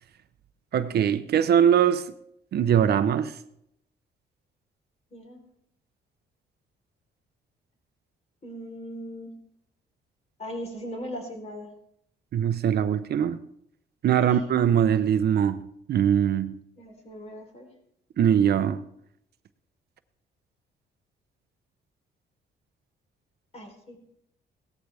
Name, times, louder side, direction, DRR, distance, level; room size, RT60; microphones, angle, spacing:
voice 1, 0.7-2.1 2.5-3.4 12.3-13.4 14.0-15.6 15.9-16.5 18.2-18.8, right 9 dB, 60° right, 0.8 m, -22 dB
voice 2, 5.1-5.4 8.4-9.3 10.4-11.7 14.2-14.4 16.8-17.7 23.5-24.2, equal, 35° left, 4.0 m, -39 dB
17.0 x 13.5 x 3.5 m
cardioid pair, 105°, 19 cm